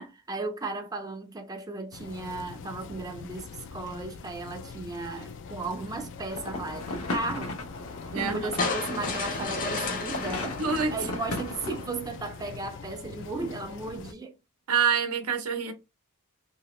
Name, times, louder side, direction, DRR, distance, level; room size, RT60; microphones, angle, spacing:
voice 1, 0.0-7.6 8.1-14.3, right 3 dB, 15° right, 0.4 m, -35 dB
sound 1, 1.9-14.1, left 5 dB, 60° left, 0.4 m, -43 dB
sound 2, 6.3-11.9, left 2 dB, 80° left, 0.9 m, -36 dB
voice 2, 8.1-8.5 10.6-10.9 14.7-15.7, right 6 dB, 80° right, 0.7 m, -26 dB
sound 3, 8.6-11.8, left 3 dB, 40° left, 0.7 m, -33 dB
2.9 x 2.8 x 3.0 m
head